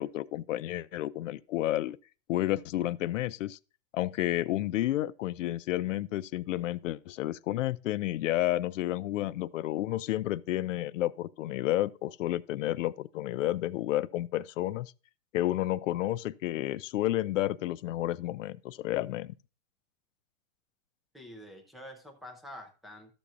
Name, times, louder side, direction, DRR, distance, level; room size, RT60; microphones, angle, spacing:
voice 1, 0.0-2.0 2.3-3.6 3.9-14.9 15.3-19.3, left 14 dB, 75° left, 0.6 m, -31 dB
voice 2, 21.1-23.1, left 1 dB, ahead, 0.3 m, -47 dB
13.0 x 6.9 x 2.4 m
supercardioid pair, 145°, 38 cm